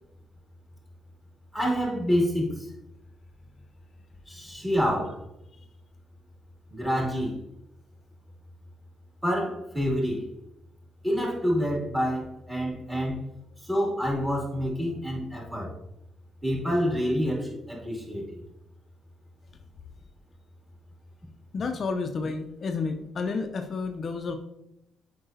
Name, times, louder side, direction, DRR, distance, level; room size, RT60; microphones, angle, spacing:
voice 1, 1.5-2.7 4.3-5.2 6.7-7.4 9.2-10.3 11.0-13.2 13.6-15.7 16.4-18.4, equal, 10° right, -2 dB, 2.4 m, -27 dB
voice 2, 21.5-24.3, left 4 dB, 50° left, 5 dB, 0.5 m, -30 dB
7.7 x 5.2 x 2.7 m, 0.83 s
cardioid pair, 90°, 0 cm